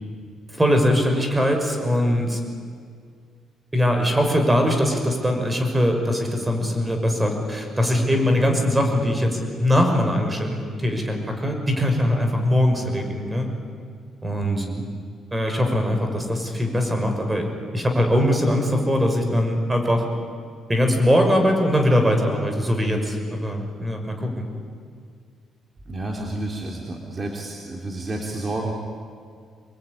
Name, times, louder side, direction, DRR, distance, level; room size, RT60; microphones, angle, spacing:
voice 1, 0.5-2.4 3.7-13.5 14.2-14.7 15.3-17.5 17.7-20.1 20.7-24.5, equal, 15° right, 4 dB, 6.2 m, -21 dB
voice 2, 14.4-14.8 25.9-28.7, right 2 dB, 35° right, 0 dB, 3.6 m, -30 dB
27.0 x 22.0 x 10.0 m, 2.1 s
cardioid pair, 90°, 0 cm